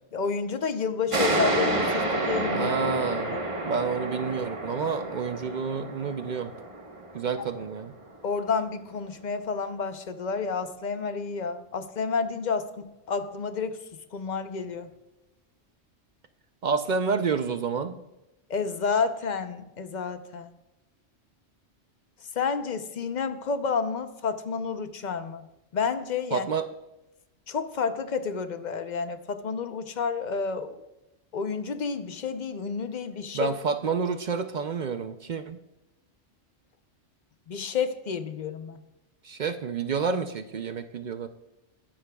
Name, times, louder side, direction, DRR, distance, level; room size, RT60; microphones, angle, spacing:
voice 1, 0.1-2.7 3.1-3.4 8.2-13.8 14.1-14.9 18.5-20.5 22.3-25.5 25.7-26.5 27.5-30.8 31.3-33.5 37.5-38.8, left 5 dB, 45° left, 9 dB, 0.7 m, -30 dB
sound 1, 1.1-8.3, right 2 dB, 30° right, 1.1 m, -30 dB
voice 2, 2.5-3.4 3.7-6.5 7.1-7.9 16.6-17.9 26.3-26.7 33.3-35.6 39.2-41.3, right 5 dB, 55° right, 9 dB, 0.6 m, -29 dB
20.5 x 11.5 x 2.3 m, 0.97 s
omnidirectional pair, 1.2 m